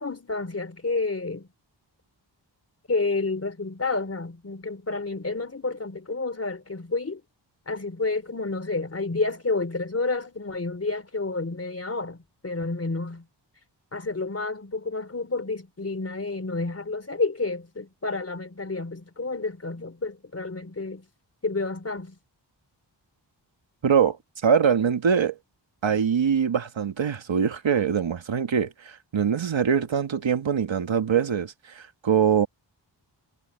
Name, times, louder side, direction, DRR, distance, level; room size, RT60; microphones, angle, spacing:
voice 1, 0.0-1.5 2.9-7.2 7.7-13.3 13.9-21.0 21.4-22.2, left 3 dB, 35° left, 3.6 m, -30 dB
voice 2, 23.8-24.2 24.4-25.3 25.8-32.5, right 7 dB, 90° right, 1.8 m, -23 dB
wide cardioid pair, 110°, 45 cm